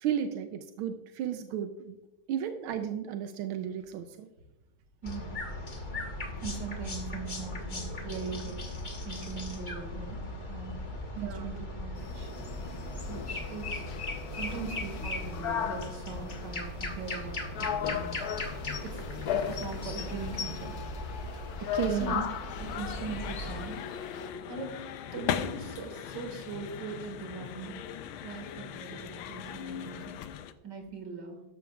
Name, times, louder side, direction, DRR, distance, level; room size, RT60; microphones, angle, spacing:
voice 1, 0.0-2.0 2.3-4.3 11.2-11.5 21.7-22.2, right 9 dB, 85° right, 7 dB, 1.5 m, -33 dB
sound 1, 5.0-23.6, left 1 dB, 30° left, 1.1 m, -38 dB
voice 2, 5.0-5.4 6.4-10.8 11.2-12.3 13.1-13.8 14.3-18.2 18.6-19.0 19.3-20.8 21.8-22.2 22.6-23.8 24.5-24.7 25.1-27.8 28.2-30.1 30.6-31.4, right 4 dB, 60° right, 4 dB, 2.5 m, -41 dB
sound 2, 12.0-24.3, left 8 dB, 60° left, 1.1 m, -37 dB
sound 3, 22.5-30.5, left 9 dB, 80° left, 1.5 m, -39 dB
13.5 x 12.0 x 2.4 m, 0.97 s
omnidirectional pair, 2.2 m